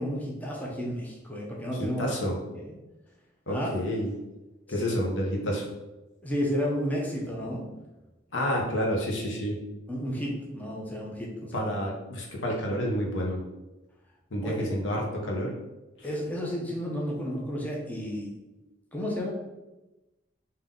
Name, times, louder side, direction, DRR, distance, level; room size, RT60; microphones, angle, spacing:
voice 1, 0.0-2.0 2.7-2.8 3.5-3.7 4.8-4.9 6.2-7.7 9.9-11.7 14.4-14.5 16.0-18.3 18.9-19.3, equal, 10° left, -3 dB, 0.7 m, -32 dB
voice 2, 1.7-2.3 3.5-4.1 4.7-5.7 8.3-9.6 11.5-13.4 14.3-15.5 16.0-16.1, equal, 80° left, -1 dB, 0.9 m, -29 dB
3.7 x 2.8 x 3.7 m, 1.0 s
head